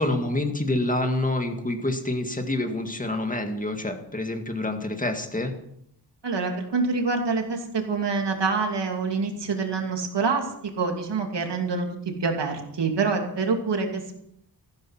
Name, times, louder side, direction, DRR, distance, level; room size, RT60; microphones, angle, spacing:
voice 1, 0.0-5.5, left 1 dB, 20° left, 5 dB, 2.0 m, -27 dB
voice 2, 6.2-10.5 10.8-11.9 12.2-14.2, right 4 dB, 80° right, 3 dB, 2.7 m, -26 dB
15.0 x 12.0 x 5.8 m, 0.72 s
wide cardioid pair, 115°, 42 cm